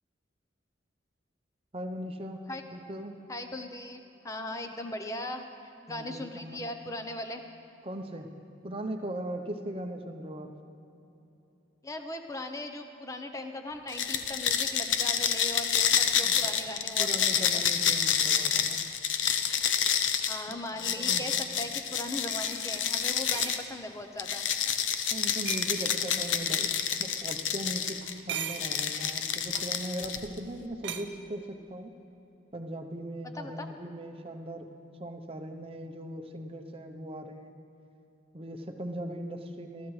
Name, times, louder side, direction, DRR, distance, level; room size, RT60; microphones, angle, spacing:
voice 1, 1.7-2.5 2.7-3.2 5.9-6.6 7.8-8.3 8.6-10.5 16.2-16.7 17.0-18.8 20.8-21.3 25.1-26.7 27.0-31.9 32.5-34.7 35.0-37.5 38.3-39.9, right 1 dB, 30° right, 5 dB, 0.7 m, -39 dB
voice 2, 3.3-5.5 5.9-7.4 11.8-17.6 20.3-24.5 33.2-33.7, left 1 dB, 15° left, 6 dB, 0.6 m, -39 dB
sound 1, 13.9-23.6 24.2-28.1 28.5-30.4, left 8 dB, 80° left, 0.7 m, -28 dB
sound 2, 21.5-21.6 22.3-23.6 25.4-26.0 28.0-28.8 29.5-29.7 30.8-31.0, right 8 dB, 65° right, 0.7 m, -39 dB
20.0 x 13.5 x 3.2 m, 2.9 s
head